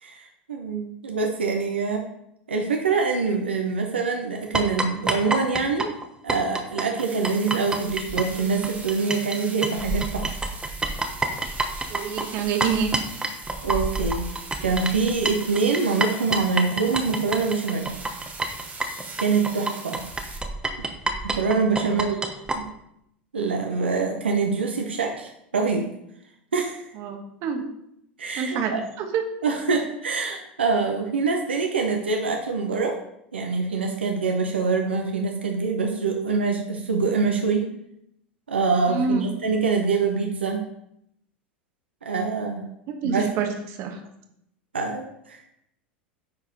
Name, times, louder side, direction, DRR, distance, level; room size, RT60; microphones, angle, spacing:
voice 1, 0.0-2.1 2.5-5.9 6.2-10.4 13.6-14.3 14.6-17.9 19.2-20.0 21.2-22.2 22.5-22.7 23.3-25.8 26.5-26.9 28.2-28.8 29.4-33.0 33.3-37.7 38.5-40.6 42.0-42.6 43.0-43.3 44.7-45.6, right 4 dB, 80° right, 2 dB, 0.8 m, -25 dB
sound 1, 4.5-9.4 9.6-22.6, right 2 dB, 15° right, 1.0 m, -28 dB
sound 2, 7.0-20.4, right 3 dB, 30° right, 2.0 m, -41 dB
voice 2, 11.9-12.9 21.8-22.2 26.9-27.6 28.3-29.2 38.9-39.3 42.9-44.0, right 6 dB, 50° right, 5 dB, 1.3 m, -27 dB
9.6 x 4.1 x 4.0 m, 0.78 s
figure-of-eight pair, 85°, 6 cm